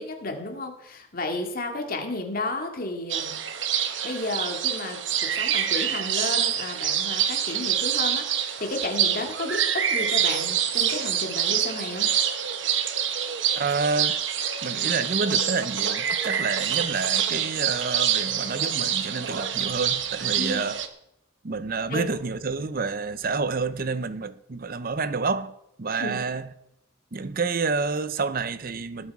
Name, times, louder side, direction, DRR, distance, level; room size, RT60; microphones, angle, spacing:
voice 1, 0.0-3.4 4.0-12.1 20.4-20.6 21.9-22.1 26.0-26.2, left 2 dB, 45° left, 2.1 m, -32 dB
sound 1, 3.1-20.9, right 9 dB, 65° right, 1.0 m, -26 dB
voice 2, 13.6-14.2 14.6-20.8 21.4-26.5 27.1-29.1, right 4 dB, 45° right, 0.6 m, -29 dB
19.5 x 7.6 x 4.8 m
head